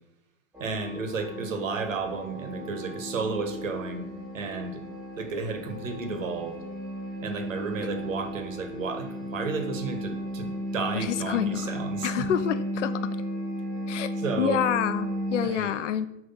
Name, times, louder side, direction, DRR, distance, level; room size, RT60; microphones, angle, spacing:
sound 1, 0.5-15.5, equal, ahead, 1.0 m, -34 dB
voice 1, 0.6-4.1 4.3-4.8 5.2-6.6 7.2-12.3 14.2-14.6 15.4-15.8, right 4 dB, 80° right, 5 dB, 1.6 m, -32 dB
voice 2, 10.9-11.7 12.0-13.0 13.9-16.1, left 10 dB, 65° left, 11 dB, 0.7 m, -28 dB
7.0 x 3.4 x 5.7 m, 0.81 s
hypercardioid pair, 155°, 39 cm